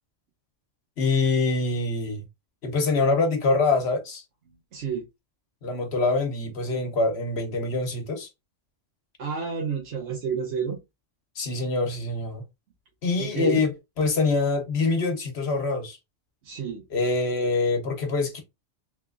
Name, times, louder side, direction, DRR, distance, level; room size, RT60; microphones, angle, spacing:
voice 1, 1.0-2.2 2.6-4.2 5.6-8.3 11.4-12.4 13.0-16.0 16.9-18.4, left 3 dB, 60° left, 1.1 m, -25 dB
voice 2, 4.5-5.1 9.2-10.8 13.2-13.6 16.4-16.8, right 6 dB, 65° right, 1.2 m, -30 dB
3.5 x 2.8 x 2.4 m
omnidirectional pair, 1.3 m